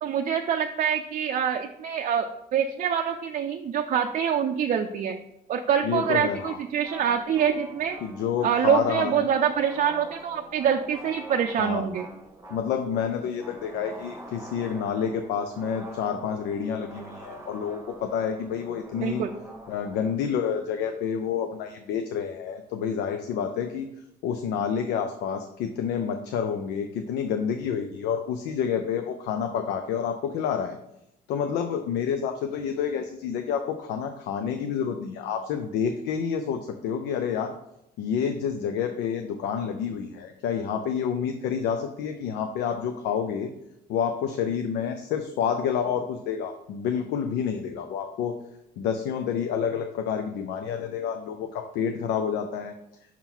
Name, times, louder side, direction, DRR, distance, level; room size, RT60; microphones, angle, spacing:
voice 1, 0.0-5.2 5.5-8.0 8.4-12.1 19.0-19.3, right 8 dB, 50° right, 5 dB, 0.4 m, -25 dB
voice 2, 5.8-6.6 8.0-9.3 11.6-11.9 12.5-19.2 19.7-23.9 24.2-30.8 31.3-37.5 38.0-43.5 43.9-48.4 48.8-52.7, left 7 dB, 85° left, 6 dB, 0.5 m, -29 dB
sound 1, 6.8-20.1, right 1 dB, 15° right, 1.1 m, -44 dB
5.7 x 3.8 x 4.4 m, 0.83 s
cardioid pair, 110°, 17 cm